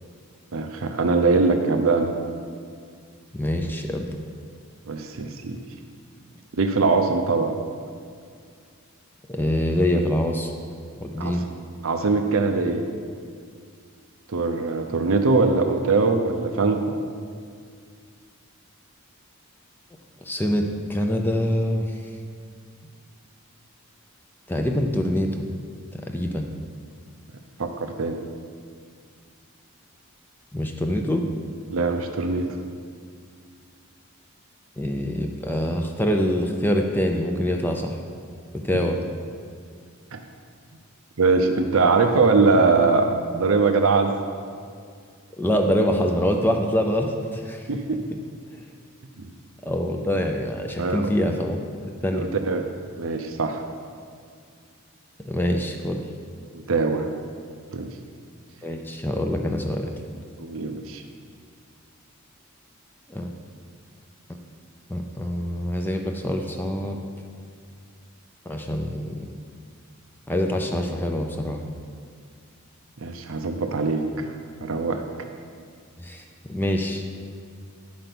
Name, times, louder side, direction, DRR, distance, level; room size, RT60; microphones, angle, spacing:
voice 1, 0.5-2.1 4.9-5.6 6.5-7.5 11.2-11.5 11.8-12.9 14.3-16.8 27.6-28.2 31.7-32.5 40.1-40.2 41.2-44.2 47.7-48.0 49.2-49.3 50.8-51.1 52.1-52.6 53.0-53.6 56.5-57.1 57.7-57.9 60.4-61.0 73.0-74.3 74.6-75.0, right 4 dB, 70° right, 5 dB, 0.6 m, -22 dB
voice 2, 3.3-4.2 9.3-10.5 11.0-11.5 20.2-22.0 24.5-25.4 25.9-26.5 30.5-31.3 34.8-38.0 38.6-39.0 45.4-47.7 49.6-52.3 55.3-56.0 58.6-59.9 63.1-63.3 64.9-67.0 68.5-69.3 70.3-71.6 76.0-76.2 76.5-77.0, equal, 10° left, 3 dB, 0.4 m, -25 dB
10.5 x 5.2 x 5.9 m, 2.2 s
head